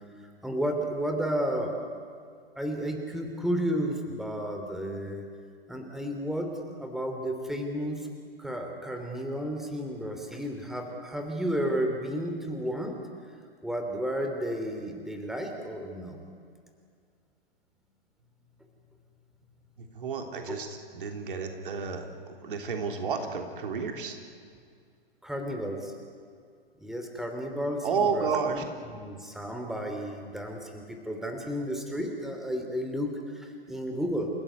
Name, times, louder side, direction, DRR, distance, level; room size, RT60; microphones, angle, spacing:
voice 1, 0.4-1.7 2.5-5.2 5.7-8.1 8.4-13.0 13.6-16.2 20.4-20.6 25.2-25.9 26.8-28.6 29.0-34.3, equal, ahead, 3 dB, 3.0 m, -32 dB
voice 2, 19.8-24.2 27.8-28.6, right 5 dB, 60° right, 4 dB, 3.3 m, -31 dB
29.5 x 16.0 x 9.5 m, 2.2 s
figure-of-eight pair, 110°, 30 cm